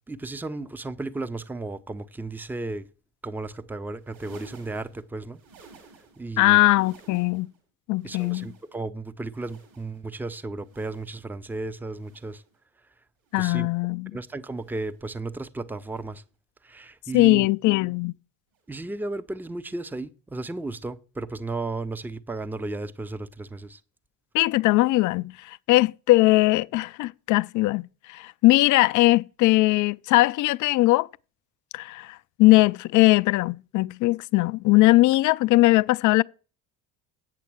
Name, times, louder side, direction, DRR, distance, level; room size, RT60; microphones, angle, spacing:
voice 1, 0.1-2.9 3.2-5.4 6.2-6.6 8.0-12.4 13.4-13.7 14.1-16.2 16.6-17.5 18.7-23.8, right 2 dB, 5° right, 0.6 m, -34 dB
sound 1, 3.9-6.3 6.6-7.6 7.9-8.9 9.3-10.1 10.6-11.3 11.9-12.6 13.2-13.8 14.5-15.1 15.9-16.3 17.2-17.5 18.5-18.7 19.9-20.0, right 4 dB, 65° right, 4.7 m, -55 dB
voice 2, 6.4-7.5 7.9-8.5 13.3-14.1 17.1-18.1 24.3-31.1 31.7-36.2, left 19 dB, 45° left, 0.4 m, -20 dB
8.2 x 7.5 x 6.1 m
hypercardioid pair, 60°, 47 cm